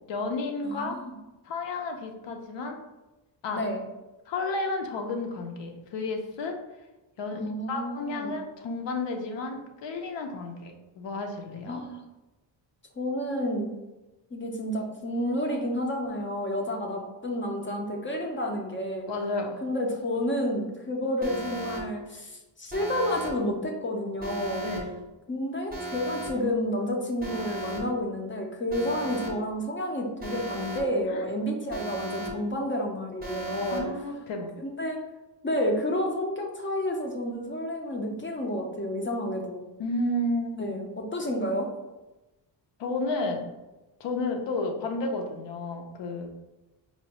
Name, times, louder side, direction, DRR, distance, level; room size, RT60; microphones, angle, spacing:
voice 1, 0.1-1.0 1.4-2.8 3.4-3.6 4.3-6.6 7.2-11.8 19.1-19.6 24.6-24.9 31.1-31.2 33.7-34.5 39.8-40.8 42.8-43.5 44.0-46.3, left 2 dB, 75° left, 3 dB, 0.6 m, -32 dB
voice 2, 0.6-1.1 3.5-3.8 7.3-8.4 11.7-12.0 13.0-13.7 14.3-19.1 19.6-24.7 25.3-33.9 34.6-35.0 35.4-39.6 40.6-41.7, left 1 dB, 30° left, 2 dB, 0.4 m, -30 dB
Alarm, 21.2-21.8 22.7-23.3 24.2-24.8 25.7-26.3 27.2-27.8 28.7-29.3 30.2-30.8 31.7-32.3 33.2-33.8, right 2 dB, 20° right, 0.6 m, -36 dB
4.3 x 2.3 x 2.8 m, 1.0 s
wide cardioid pair, 160°, 44 cm